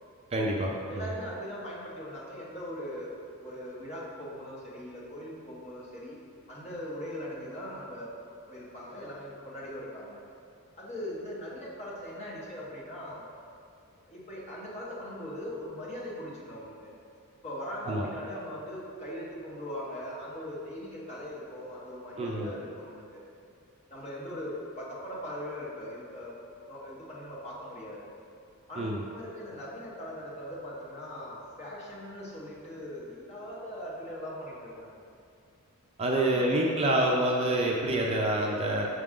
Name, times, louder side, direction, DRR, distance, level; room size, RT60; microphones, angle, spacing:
voice 1, 0.3-1.1 17.9-18.1 22.2-22.5 28.8-29.0 36.0-38.9, right 1 dB, 25° right, -1 dB, 0.4 m, -27 dB
voice 2, 0.9-3.1 3.4-6.2 6.5-8.1 8.5-10.2 10.8-13.3 14.0-16.9 17.4-23.2 23.9-26.3 26.7-28.1 28.7-35.0 36.1-37.3, equal, 30° left, -6 dB, 1.3 m, -40 dB
5.9 x 4.8 x 3.7 m, 2.4 s
head